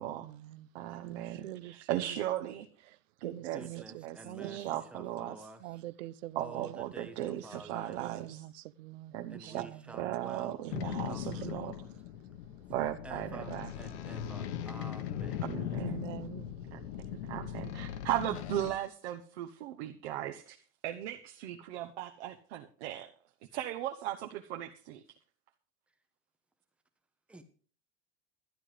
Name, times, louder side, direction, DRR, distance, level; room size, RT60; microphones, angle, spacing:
voice 1, 0.2-0.7 1.2-2.5 2.9-4.7 5.6-6.7 7.5-10.0 10.6-11.0 11.3-11.5 15.8-16.5, right 15 dB, 90° right, 0.9 m, -45 dB
voice 2, 0.7-2.7 3.2-5.5 6.3-8.4 9.1-9.7 9.9-11.8 12.7-13.7 15.4-16.0 16.7-16.8 17.1-20.6 20.8-23.1 23.5-25.0, right 13 dB, 60° right, 1.1 m, -37 dB
voice 3, 3.4-4.6 4.9-5.6 6.4-7.2 7.4-8.0 9.3-11.9 12.7-15.4 27.3-27.4, right 2 dB, 5° right, 0.8 m, -50 dB
sound 1, 10.7-18.7, left 10 dB, 60° left, 1.4 m, -39 dB
12.5 x 10.5 x 5.1 m
supercardioid pair, 180°, 37 cm